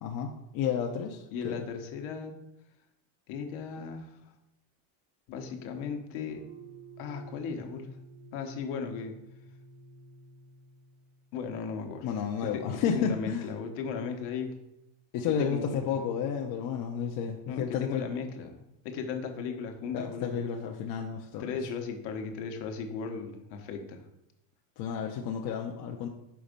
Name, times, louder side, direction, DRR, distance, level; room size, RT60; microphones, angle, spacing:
voice 1, 0.0-1.6 12.0-13.5 15.1-18.0 19.9-21.6 24.8-26.1, left 7 dB, 55° left, 1 dB, 0.7 m, -32 dB
voice 2, 1.3-2.3 3.3-4.2 5.3-6.4 7.0-8.0 8.3-9.2 11.3-12.1 12.4-14.5 15.3-15.8 17.5-20.4 21.4-24.0, left 6 dB, 70° left, 4 dB, 1.2 m, -36 dB
sound 1, 6.3-11.5, right 3 dB, 75° right, 1.1 m, -51 dB
5.8 x 4.1 x 5.2 m, 0.85 s
cardioid pair, 140°, 43 cm